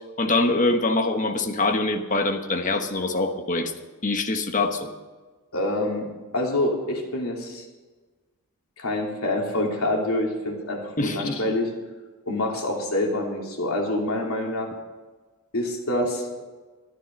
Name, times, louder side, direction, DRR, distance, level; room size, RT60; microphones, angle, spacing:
voice 1, 0.2-3.7 4.0-4.9 11.0-11.3, left 2 dB, 35° left, 6 dB, 1.2 m, -24 dB
voice 2, 5.5-6.1 6.3-7.7 8.8-11.7 12.2-14.7 15.5-16.4, left 1 dB, 75° left, 0 dB, 2.9 m, -26 dB
13.5 x 11.0 x 5.3 m, 1.3 s
head